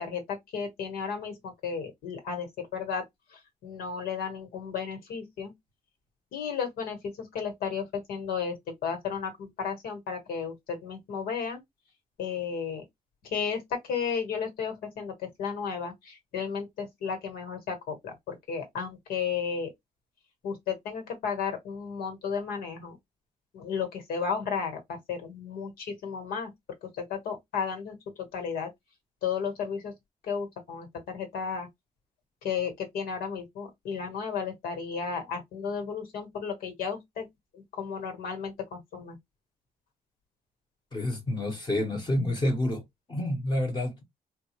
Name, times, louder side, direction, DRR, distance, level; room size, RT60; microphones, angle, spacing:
voice 1, 0.0-3.1 3.3-5.5 6.3-8.5 8.8-11.6 12.2-12.8 13.2-19.7 20.4-23.0 23.5-26.5 26.8-27.9 28.3-28.7 29.2-29.9 30.2-31.7 32.4-37.3 37.5-39.2, left 6 dB, 90° left, 1.4 m, -33 dB
voice 2, 40.9-42.8 43.1-44.0, left 1 dB, 30° left, 1.0 m, -28 dB
3.7 x 2.3 x 2.9 m
cardioid pair, 95°, 15 cm